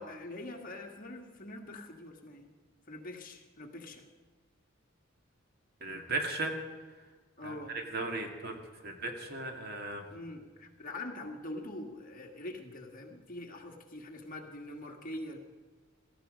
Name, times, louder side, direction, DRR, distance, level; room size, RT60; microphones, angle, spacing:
voice 1, 0.0-2.5 2.9-4.1 7.4-7.8 10.1-15.4, left 1 dB, 45° left, 2 dB, 1.8 m, -44 dB
voice 2, 5.8-6.5 7.4-8.5 8.8-10.0, right 2 dB, 50° right, 3 dB, 2.2 m, -36 dB
17.5 x 14.5 x 5.2 m, 1.3 s
head